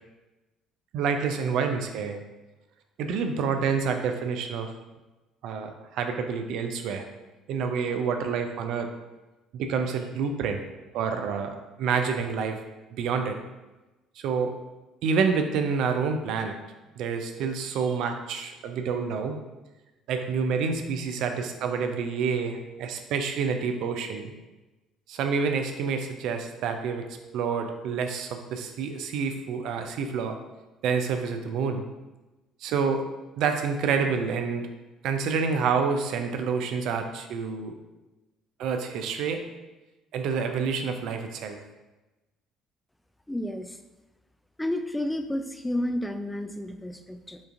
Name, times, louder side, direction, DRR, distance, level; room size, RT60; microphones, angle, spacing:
voice 1, 0.9-2.2 3.0-4.7 5.4-7.0 7.5-8.9 9.5-10.6 10.9-12.6 12.9-13.4 14.2-14.5 15.0-16.5 17.0-19.4 20.1-24.3 25.1-27.1 27.3-30.4 30.8-31.8 32.6-33.0 33.4-34.7 35.0-37.7 38.6-39.4 40.1-41.6, right 5 dB, 65° right, 6 dB, 0.4 m, -28 dB
voice 2, 43.3-43.8 44.6-47.4, left 1 dB, 10° left, 7 dB, 0.3 m, -31 dB
5.1 x 2.5 x 2.5 m, 1.1 s
hypercardioid pair, 60°, 0 cm